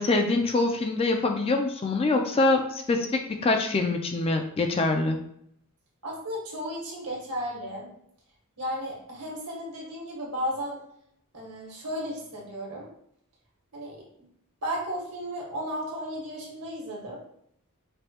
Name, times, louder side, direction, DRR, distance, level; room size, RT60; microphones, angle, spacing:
voice 1, 0.0-5.2, left 3 dB, 25° left, 5 dB, 0.4 m, -24 dB
voice 2, 6.0-7.9 8.6-10.8 11.3-12.9 13.7-14.0 14.6-17.2, equal, 85° right, -2 dB, 1.4 m, -34 dB
5.2 x 2.2 x 2.8 m, 0.70 s
head